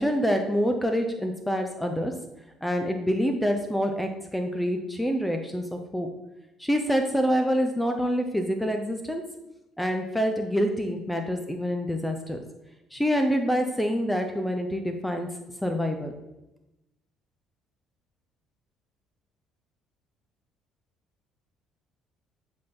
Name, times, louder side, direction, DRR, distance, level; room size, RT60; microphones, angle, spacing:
voice 1, 0.0-2.1 2.6-6.1 6.6-9.2 9.8-12.4 12.9-15.3 15.6-16.1, equal, 5° left, 4 dB, 0.8 m, -26 dB
7.5 x 4.4 x 3.7 m, 0.94 s
hypercardioid pair, 50°, 0 cm